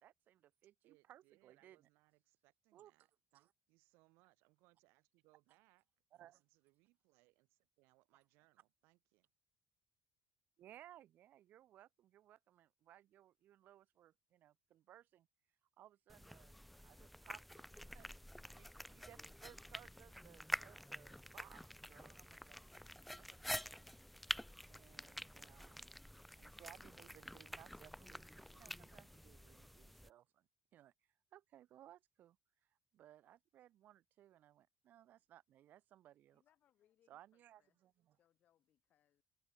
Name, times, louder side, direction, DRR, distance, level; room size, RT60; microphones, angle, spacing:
voice 1, 0.0-1.9 2.7-2.9 3.3-3.5 6.1-6.4 10.6-15.3 15.8-16.6 16.8-17.7 17.9-22.6 23.2-24.0 24.7-25.9 26.3-30.9 31.3-32.4 32.9-36.4 37.1-38.2, right 12 dB, 50° right, 1.0 m, -63 dB
voice 2, 0.8-5.8 6.1-9.3, right 24 dB, 90° right, 7.0 m, -74 dB
sound 1, 16.1-30.1, equal, ahead, 0.3 m, -48 dB
voice 3, 36.3-37.8 38.1-39.2, left 11 dB, 45° left, 2.6 m, -78 dB
cardioid pair, 145°, 4 cm